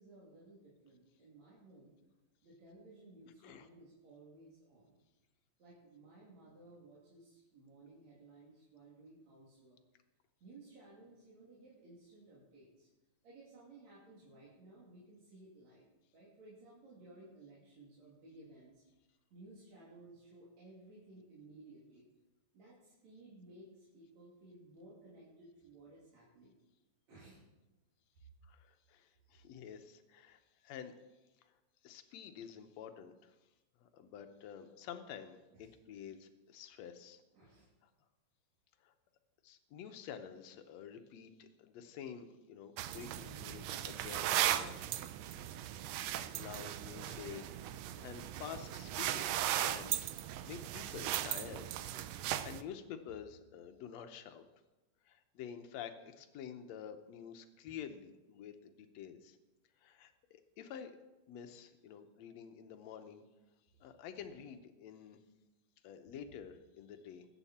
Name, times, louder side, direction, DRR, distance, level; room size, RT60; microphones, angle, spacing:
voice 1, 0.0-1.9 2.4-4.9 5.6-9.8 10.4-12.9 13.2-15.9 16.1-18.7 19.3-22.1 22.5-26.5 27.1-27.4 35.6-35.7 37.3-37.7, right 2 dB, 60° right, -7 dB, 4.0 m, -58 dB
voice 2, 28.4-31.0 31.4-31.5 31.8-33.4 33.8-37.2 38.8-38.9 39.4-44.8 45.3-45.5 46.3-47.5 48.0-54.4 55.1-59.4 59.8-61.0 61.3-63.2 63.8-65.2 65.8-67.3, left 8 dB, 70° left, 7 dB, 2.0 m, -49 dB
sound 1, 42.8-52.6, right 12 dB, 75° right, 1.6 m, -37 dB
21.0 x 9.2 x 4.3 m, 1.1 s
omnidirectional pair, 3.5 m